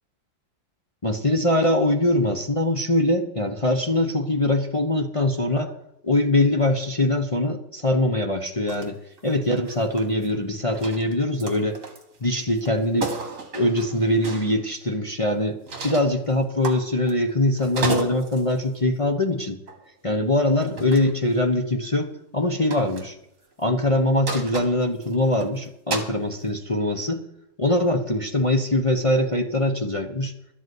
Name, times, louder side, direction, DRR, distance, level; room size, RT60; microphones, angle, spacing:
voice 1, 1.0-5.7 6.0-9.0 9.2-11.8 12.2-13.1 13.5-19.6 20.0-23.1 23.6-27.2 27.6-30.3, left 1 dB, 25° left, 3 dB, 0.7 m, -22 dB
sound 1, 8.7-8.9 9.2-10.4 10.7-12.2 12.6-12.7 13.0-14.5 15.7-16.1 16.6-17.3 17.6-18.5 19.7-19.9 20.6-21.1 22.7-23.1 24.3-25.4 25.9-26.2, right 3 dB, 45° right, 2.0 m, -32 dB
12.5 x 8.1 x 7.9 m, 0.78 s
omnidirectional pair, 2.1 m